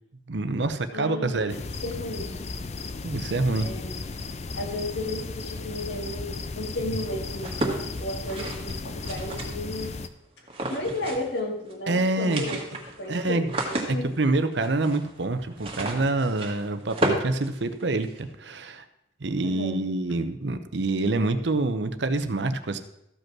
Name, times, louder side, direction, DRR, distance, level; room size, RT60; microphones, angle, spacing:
voice 1, 0.3-1.5 3.0-3.7 11.9-12.4 13.1-13.4 13.9-18.8 19.2-22.8, right 2 dB, 70° right, 10 dB, 0.8 m, -26 dB
voice 2, 0.9-2.4 3.6-4.1 4.6-10.0 10.7-12.6 13.0-14.1 19.4-19.8, left 1 dB, 75° left, 2 dB, 2.0 m, -34 dB
sound 1, 1.5-10.1, left 3 dB, 35° left, 0.5 m, -35 dB
sound 2, 7.4-9.9 10.5-11.4 11.7-11.8 12.1-18.2, right 1 dB, 30° right, 1.7 m, -32 dB
14.0 x 5.3 x 6.1 m, 0.82 s
head